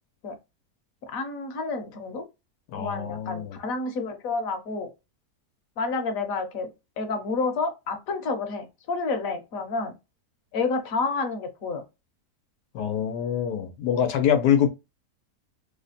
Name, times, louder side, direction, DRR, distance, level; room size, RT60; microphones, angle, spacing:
voice 1, 1.0-2.2 2.8-4.9 5.8-6.7 7.0-10.0 10.5-11.8, left 4 dB, 65° left, 1.1 m, -29 dB
voice 2, 2.7-3.6 12.7-14.7, left 9 dB, 90° left, 1.3 m, -24 dB
3.3 x 2.1 x 4.0 m
omnidirectional pair, 1.7 m